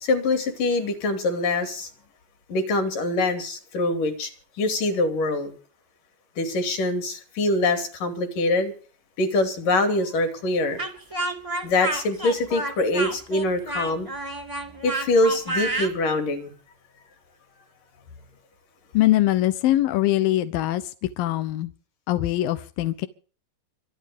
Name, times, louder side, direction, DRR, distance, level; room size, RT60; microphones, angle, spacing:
voice 1, 0.0-1.9 2.5-4.3 4.6-5.5 6.4-8.7 9.2-10.8 11.6-14.1 14.8-16.5, left 2 dB, 50° left, 8 dB, 4.0 m, -24 dB
Speech, 10.8-15.9, right 2 dB, 15° right, 1.1 m, -29 dB
voice 2, 18.9-21.7 22.1-23.1, left 14 dB, 75° left, 10 dB, 2.1 m, -22 dB
25.0 x 8.9 x 5.2 m, 0.41 s
omnidirectional pair, 5.2 m